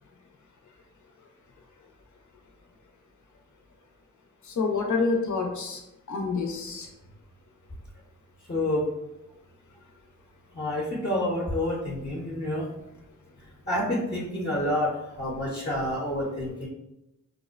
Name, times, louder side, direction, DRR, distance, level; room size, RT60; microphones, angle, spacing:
voice 1, 4.4-5.8 6.1-6.9, left 4 dB, 70° left, 2 dB, 0.7 m, -27 dB
voice 2, 8.5-8.8 10.5-12.7 13.7-14.9 15.2-16.7, left 1 dB, 35° left, -4 dB, 0.8 m, -28 dB
4.7 x 2.1 x 2.4 m, 0.90 s
cardioid pair, 60°, 31 cm